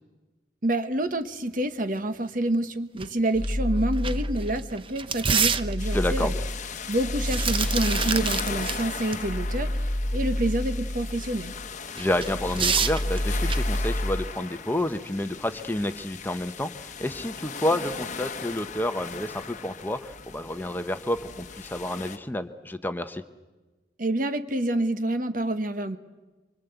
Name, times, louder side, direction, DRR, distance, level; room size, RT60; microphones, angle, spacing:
voice 1, 0.6-6.3 6.9-9.7 10.1-11.5 24.0-26.0, right 1 dB, 50° right, 10 dB, 1.3 m, -27 dB
sound 1, 3.0-3.1 3.4-3.5 3.9-6.1 7.0-8.8 9.1-9.2 12.0-13.9, right 6 dB, 30° right, 0.8 m, -28 dB
sound 2, 3.3-4.8 5.2-11.7 12.0-14.3, left 1 dB, 85° left, 1.4 m, -30 dB
sound 3, 5.8-22.2, left 5 dB, 40° left, 1.1 m, -38 dB
voice 2, 5.9-6.4 12.0-23.2, left 1 dB, 10° left, 9 dB, 0.9 m, -29 dB
25.5 x 24.5 x 8.1 m, 1.2 s
head